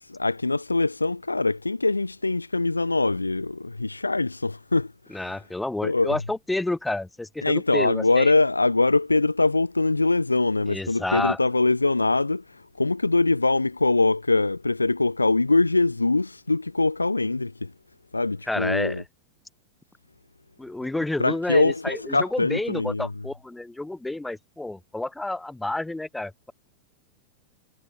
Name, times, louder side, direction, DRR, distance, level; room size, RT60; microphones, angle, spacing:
voice 1, 0.1-5.2 5.8-6.2 7.4-12.4 12.8-17.7 18.1-19.0 21.2-23.1, left 3 dB, 80° left, 0.8 m, -23 dB
voice 2, 5.1-8.3 10.7-11.4 18.5-19.0 20.6-26.5, left 2 dB, 5° left, 2.6 m, -30 dB
figure-of-eight pair, 90°, 0 cm